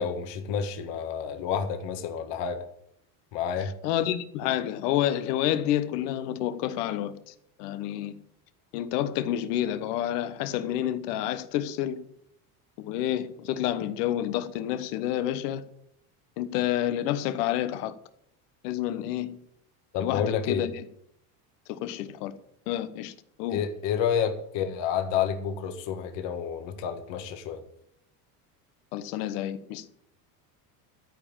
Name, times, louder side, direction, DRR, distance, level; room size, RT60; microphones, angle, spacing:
voice 1, 0.0-2.6 3.3-3.7 19.9-20.7 23.5-27.6, left 7 dB, 60° left, 1.7 m, -29 dB
voice 2, 3.8-7.3 7.6-8.2 8.7-12.0 12.8-15.6 16.4-17.9 18.6-19.3 20.0-20.7 21.7-22.3 22.7-23.1 23.4-23.6 28.9-29.9, left 12 dB, 80° left, 1.2 m, -29 dB
13.0 x 5.1 x 9.0 m
supercardioid pair, 100°, 46 cm